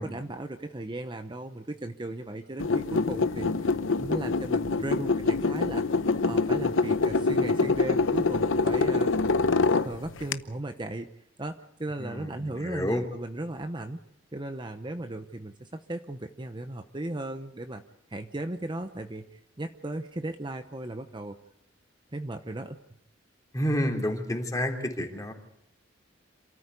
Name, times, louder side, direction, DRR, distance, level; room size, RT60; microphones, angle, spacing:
voice 1, 0.0-9.1 9.7-11.1 11.4-14.0 14.3-17.8 18.1-21.4 22.1-22.8, right 1 dB, 25° right, 7 dB, 0.9 m, -36 dB
sound 1, 2.6-10.3, left 3 dB, 85° left, 0.8 m, -25 dB
voice 2, 12.0-13.0 23.5-25.3, equal, 20° left, 2 dB, 3.4 m, -30 dB
27.5 x 14.0 x 8.4 m, 0.82 s
head